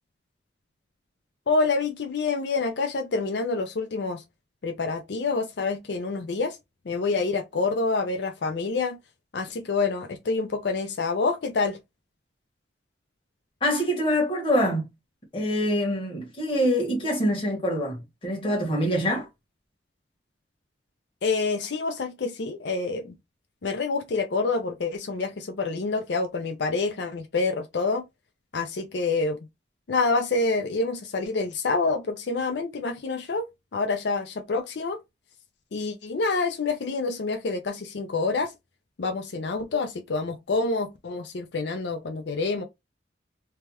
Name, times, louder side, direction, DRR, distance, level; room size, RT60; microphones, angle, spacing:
voice 1, 1.5-4.2 4.6-6.6 6.9-9.0 9.3-11.8 21.2-23.2 23.6-28.0 28.5-29.4 29.9-33.5 33.7-35.0 35.7-38.5 39.0-42.6, left 3 dB, 75° left, 0.5 m, -27 dB
voice 2, 13.6-14.9 15.3-19.3, equal, 30° left, 1.2 m, -25 dB
3.4 x 2.2 x 2.9 m
head